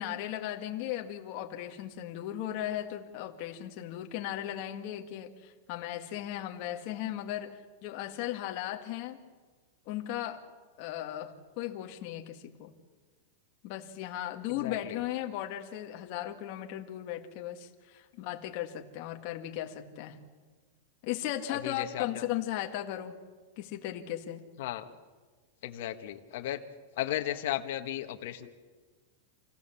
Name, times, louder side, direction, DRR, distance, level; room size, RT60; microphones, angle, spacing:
voice 1, 0.0-9.2 9.9-10.4 10.8-12.7 13.6-20.2 21.0-23.1 23.6-24.5, left 12 dB, 35° left, 3 dB, 1.8 m, -37 dB
voice 2, 14.6-15.0 21.5-22.3 24.6-24.8 25.6-26.6 27.0-28.5, left 13 dB, 50° left, 5 dB, 1.6 m, -35 dB
28.5 x 16.5 x 7.1 m, 1.4 s
supercardioid pair, 175°, 0 cm